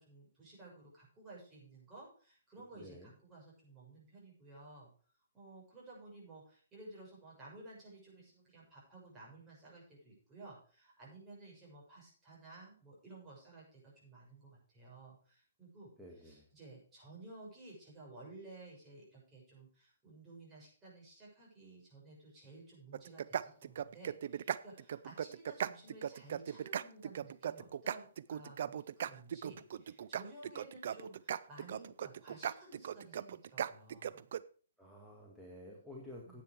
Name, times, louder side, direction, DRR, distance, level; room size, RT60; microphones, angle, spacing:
voice 1, 0.0-4.9 5.3-34.2 36.2-36.4, right 2 dB, 20° right, -4 dB, 6.3 m, -55 dB
voice 2, 2.7-3.1 16.0-16.5 34.8-36.4, left 1 dB, 5° right, -3 dB, 1.9 m, -51 dB
sound 1, 22.9-34.4, right 9 dB, 60° right, 0.5 m, -38 dB
10.5 x 8.6 x 4.7 m, 0.42 s
hypercardioid pair, 145°, 0 cm